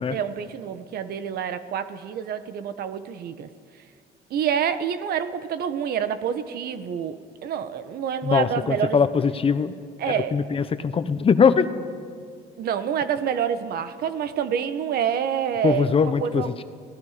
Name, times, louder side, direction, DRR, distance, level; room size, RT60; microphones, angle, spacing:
voice 1, 0.1-3.5 4.3-9.0 10.0-10.4 12.6-16.5, right 8 dB, 65° right, 11 dB, 1.3 m, -27 dB
voice 2, 8.2-9.7 10.1-11.7 15.6-16.6, left 6 dB, 35° left, 11 dB, 1.0 m, -21 dB
30.0 x 18.5 x 5.1 m, 2.2 s
cardioid pair, 110°, 17 cm